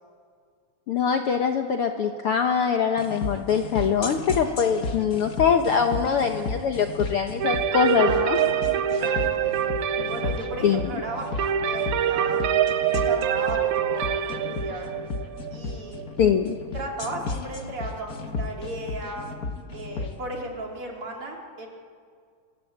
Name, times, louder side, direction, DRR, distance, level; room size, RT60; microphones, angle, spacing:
voice 1, 0.9-8.4 10.6-10.8 16.2-16.6, left 7 dB, 90° left, 5 dB, 1.2 m, -23 dB
sound 1, 3.0-20.1, left 3 dB, 55° left, 1.0 m, -34 dB
sound 2, 7.4-17.1, right 9 dB, 70° right, 2.0 m, -26 dB
voice 2, 8.0-9.7 10.1-12.4 12.9-14.9 15.5-16.1 16.7-19.3 19.7-21.7, right 2 dB, 40° right, 0 dB, 3.7 m, -35 dB
25.5 x 21.0 x 8.5 m, 2.2 s
omnidirectional pair, 4.0 m